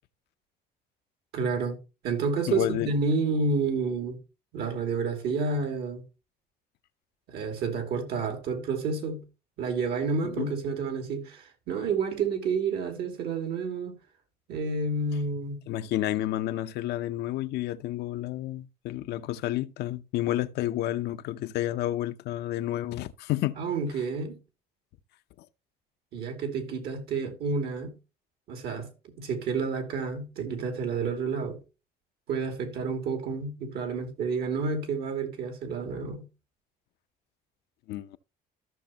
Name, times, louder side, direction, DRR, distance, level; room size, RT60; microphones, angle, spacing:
voice 1, 1.3-1.8 2.0-4.2 4.5-6.0 7.3-9.2 9.6-14.0 14.5-15.6 23.6-24.4 26.1-27.9 28.5-28.9 29.2-31.6 32.3-36.3, right 4 dB, 75° right, 2.5 m, -30 dB
voice 2, 2.5-2.9 10.2-10.5 15.7-23.6 37.9-38.2, left 14 dB, 75° left, 0.6 m, -30 dB
14.0 x 6.2 x 2.9 m
cardioid pair, 110°, 17 cm